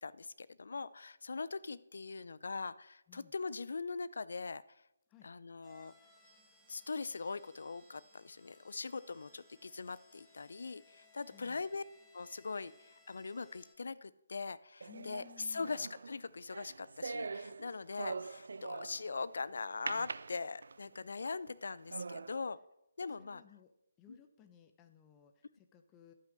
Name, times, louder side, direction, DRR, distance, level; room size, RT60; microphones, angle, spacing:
voice 1, 0.0-4.6 5.2-5.9 6.7-11.8 12.1-22.6 23.0-23.4 24.1-24.2, left 4 dB, 60° left, 18 dB, 0.6 m, -41 dB
sound 1, 5.6-13.8, left 1 dB, ahead, 1.8 m, -65 dB
voice 2, 11.3-11.6 14.9-15.7 23.2-23.7 24.0-26.1, left 10 dB, 15° left, 7 dB, 1.1 m, -59 dB
sound 2, 14.8-19.2 19.9-21.0 21.5-21.6 21.9-22.4, right 4 dB, 60° right, 0.5 m, -43 dB
11.5 x 8.5 x 6.3 m, 0.85 s
figure-of-eight pair, 145°, 0 cm